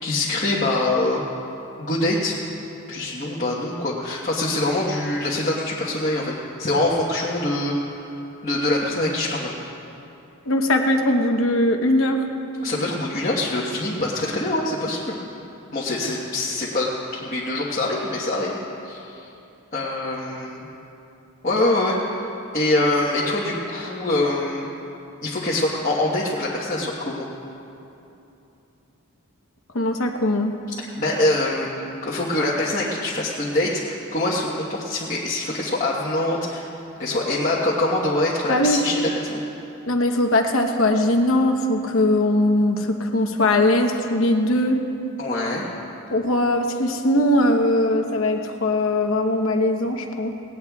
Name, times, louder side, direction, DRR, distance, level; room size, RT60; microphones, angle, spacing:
voice 1, 0.0-1.2 1.8-2.3 2.9-6.3 6.6-8.1 8.4-9.5 12.6-15.2 15.7-18.6 18.8-19.3 19.7-20.7 21.4-22.0 22.5-24.7 25.2-27.3 30.9-36.7 37.0-39.4 45.2-45.7, left 2 dB, 35° left, -6 dB, 1.3 m, -24 dB
voice 2, 10.5-12.2 29.7-30.5 38.5-38.8 39.9-44.8 46.1-50.3, left 1 dB, 60° left, 4 dB, 1.0 m, -20 dB
18.5 x 18.0 x 2.4 m, 2.9 s
head